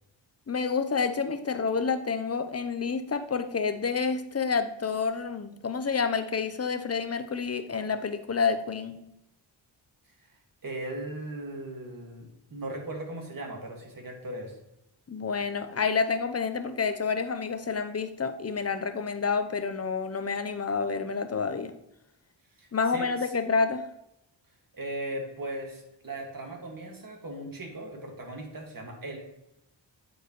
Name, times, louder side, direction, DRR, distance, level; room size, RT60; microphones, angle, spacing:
voice 1, 0.5-9.0 15.1-21.7 22.7-23.8, left 5 dB, 30° left, 9 dB, 0.8 m, -29 dB
voice 2, 10.6-14.6 22.6-23.3 24.7-29.2, right 1 dB, 45° right, 1 dB, 2.1 m, -38 dB
8.9 x 4.7 x 3.1 m, 0.84 s
cardioid pair, 60°, 47 cm